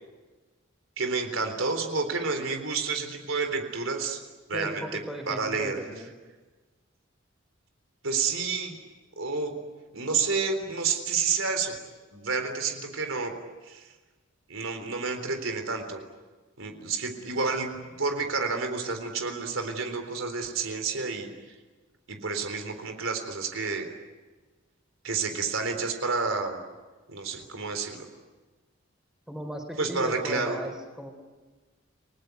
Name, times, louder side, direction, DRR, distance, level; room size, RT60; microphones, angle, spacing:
voice 1, 1.0-4.2 4.5-5.8 8.0-8.8 9.2-9.5 9.9-11.7 12.1-13.3 13.6-13.9 14.5-16.0 16.6-21.3 22.1-23.9 25.0-26.6 27.1-28.1 29.8-30.6, right 4 dB, 80° right, 5 dB, 3.8 m, -30 dB
voice 2, 4.5-6.1 29.3-31.1, equal, 5° right, 4 dB, 3.8 m, -37 dB
30.0 x 20.0 x 9.4 m, 1.3 s
head